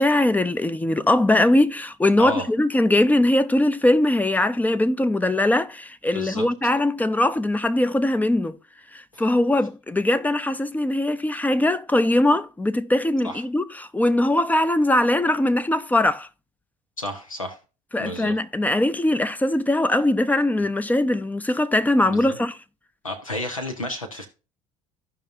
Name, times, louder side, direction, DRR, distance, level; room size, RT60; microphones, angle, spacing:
voice 1, 0.0-8.6 8.9-16.3 17.9-22.6, left 1 dB, 10° left, 0.5 m, -21 dB
voice 2, 2.2-2.5 6.1-6.7 9.1-9.2 13.2-13.4 17.0-17.6 18.0-18.3 22.0-22.4 23.0-24.3, left 1 dB, 85° left, 1.0 m, -32 dB
15.5 x 5.3 x 2.6 m
figure-of-eight pair, 60°, 17 cm